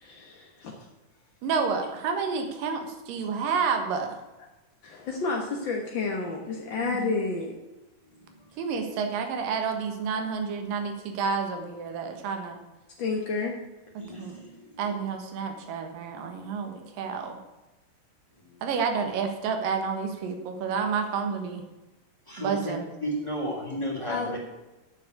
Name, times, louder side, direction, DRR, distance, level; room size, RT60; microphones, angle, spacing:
voice 1, 0.0-0.7 4.8-7.5 13.0-13.5 24.1-24.3, left 4 dB, 55° left, 0 dB, 1.3 m, -30 dB
voice 2, 1.4-4.2 6.8-7.1 8.6-12.6 14.0-14.4 14.8-17.4 18.6-21.6 22.4-22.9, right 5 dB, 85° right, 5 dB, 3.0 m, -30 dB
voice 3, 8.0-8.6 14.0-15.0 18.4-18.6 22.3-22.7 23.0-24.4, equal, 10° left, -1 dB, 2.7 m, -34 dB
9.8 x 7.5 x 8.2 m, 1.1 s
omnidirectional pair, 3.9 m